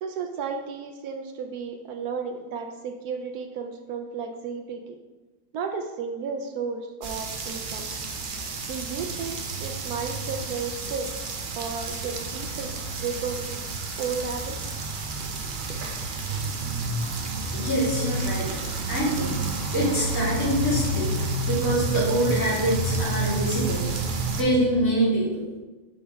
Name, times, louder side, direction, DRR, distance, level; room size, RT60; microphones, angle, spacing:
voice 1, 0.0-5.0 5.5-7.9 8.6-11.1 11.5-13.6 14.0-14.6, right 5 dB, 75° right, 5 dB, 1.0 m, -33 dB
sound 1, 7.0-24.4, right 3 dB, 60° right, 0.5 m, -30 dB
voice 2, 17.5-18.5 18.9-19.4 19.7-23.9 24.4-25.4, equal, 55° left, -7 dB, 2.6 m, -25 dB
6.2 x 5.2 x 3.5 m, 1.2 s
omnidirectional pair, 1.7 m